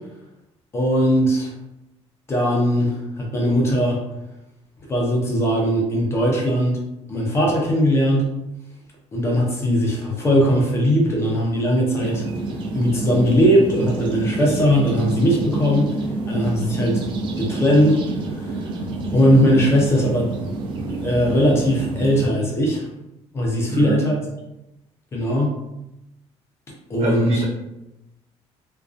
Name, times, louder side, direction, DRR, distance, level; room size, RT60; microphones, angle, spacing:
voice 1, 0.7-1.5 2.3-4.0 4.9-6.8 7.1-8.3 9.1-12.2 12.7-15.9 16.3-17.0 17.4-18.0 18.3-18.7 19.1-20.3 21.0-22.9 23.3-24.2 25.1-25.6 26.9-27.4, equal, 20° left, -2 dB, 0.4 m, -19 dB
sound 1, 12.0-22.3, right 2 dB, 45° right, 0.4 m, -28 dB
voice 2, 23.7-24.1 27.0-27.4, right 2 dB, 60° right, -3 dB, 0.7 m, -24 dB
2.4 x 2.2 x 2.4 m, 0.90 s
cardioid pair, 180°, 12 cm